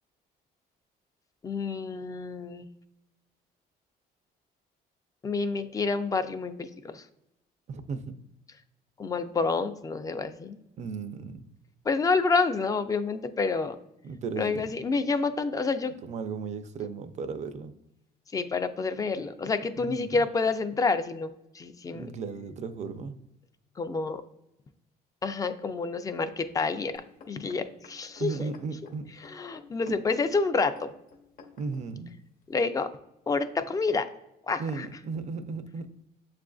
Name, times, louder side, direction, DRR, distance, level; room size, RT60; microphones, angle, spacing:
voice 1, 1.4-2.7 5.2-7.0 9.0-10.6 11.9-13.8 14.4-15.9 18.3-22.1 23.8-24.2 25.2-28.5 29.2-30.9 32.5-32.9 33.3-34.1 34.5-34.9, left 4 dB, 20° left, 10 dB, 0.3 m, -28 dB
voice 2, 7.7-8.1 10.8-11.5 14.0-14.7 16.0-17.7 19.8-20.2 21.9-23.2 28.2-29.1 29.9-30.0 31.6-32.2 34.6-35.9, right 4 dB, 45° right, 10 dB, 0.4 m, -35 dB
sound 1, 27.0-31.8 32.5-32.6, left 4 dB, 55° left, 0.9 m, -51 dB
7.3 x 2.5 x 2.3 m, 0.84 s
cardioid pair, 110°, 17 cm